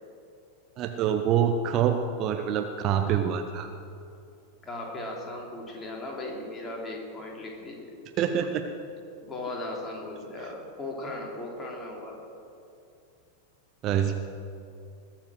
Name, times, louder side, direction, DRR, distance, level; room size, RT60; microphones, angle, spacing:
voice 1, 0.8-3.7 8.2-8.6 13.8-14.1, right 8 dB, 35° right, 6 dB, 0.8 m, -26 dB
voice 2, 4.6-7.9 9.2-12.2, left 2 dB, 15° left, -2 dB, 3.2 m, -37 dB
20.5 x 7.5 x 6.4 m, 2.5 s
figure-of-eight pair, 90°, 0 cm